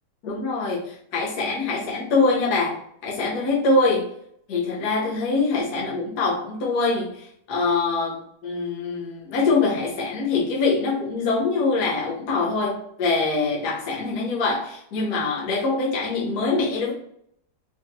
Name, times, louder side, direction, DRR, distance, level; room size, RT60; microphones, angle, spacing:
voice 1, 0.2-4.1 4.5-16.9, left 3 dB, 60° left, 1.3 m, -24 dB
4.5 x 2.6 x 3.0 m
omnidirectional pair, 2.0 m